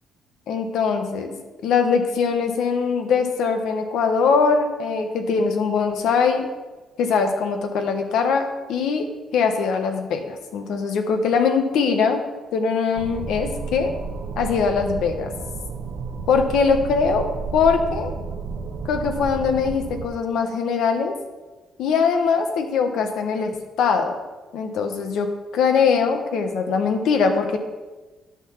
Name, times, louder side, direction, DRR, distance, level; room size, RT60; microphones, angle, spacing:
voice 1, 0.5-6.5 7.0-9.1 9.3-12.2 12.5-13.9 14.4-15.3 16.3-18.1 18.9-21.1 21.8-24.2 24.5-27.6, left 5 dB, 80° left, 6 dB, 1.1 m, -22 dB
sound 1, 12.9-20.1, right 5 dB, 75° right, 1.1 m, -32 dB
10.5 x 4.0 x 7.3 m, 1.2 s
cardioid pair, 90°, 0 cm